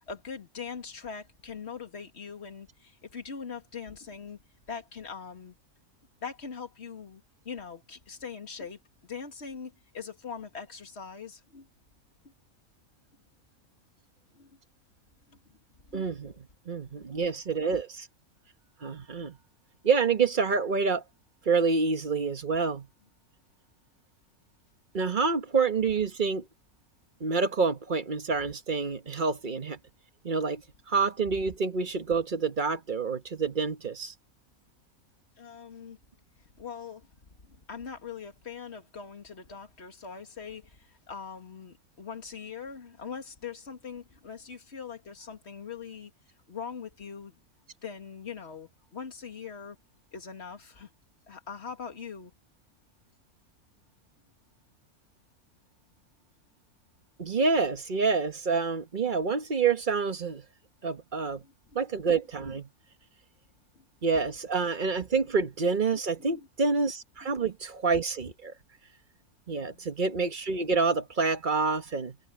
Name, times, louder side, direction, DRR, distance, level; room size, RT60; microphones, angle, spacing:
voice 1, 0.1-4.4 4.7-5.5 6.2-11.7 14.3-14.6 15.9-16.1 35.4-36.0 36.6-37.1 37.4-46.1 46.5-47.4 47.8-49.8 50.1-50.9 51.3-52.3 61.4-61.5 63.8-63.9 66.2-66.5 69.6-69.9, left 6 dB, 50° left, 2.4 m, -42 dB
voice 2, 15.9-16.3 16.7-18.1 18.8-19.4 19.8-21.0 21.4-22.9 24.9-26.4 27.2-29.8 30.2-30.6 30.9-34.1 57.2-60.4 60.8-61.4 61.7-62.7 64.0-68.5 69.5-72.2, right 4 dB, 35° right, 1.3 m, -27 dB
omnidirectional pair, 1.5 m